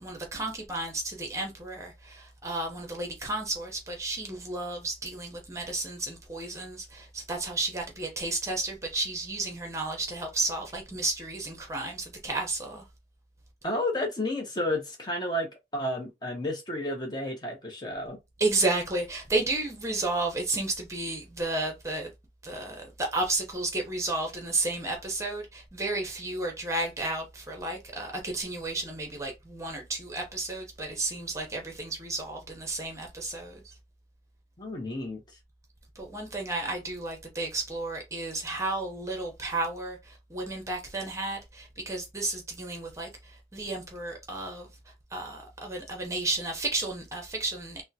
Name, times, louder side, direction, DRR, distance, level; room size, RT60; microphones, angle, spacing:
voice 1, 0.0-12.8 18.4-22.1 22.4-33.5 36.0-43.1 43.5-44.7 45.1-47.8, right 2 dB, 15° right, 0.8 m, -32 dB
voice 2, 13.6-15.5 15.7-18.2 34.6-35.2, left 1 dB, 25° left, 0.8 m, -31 dB
3.5 x 2.1 x 2.7 m
head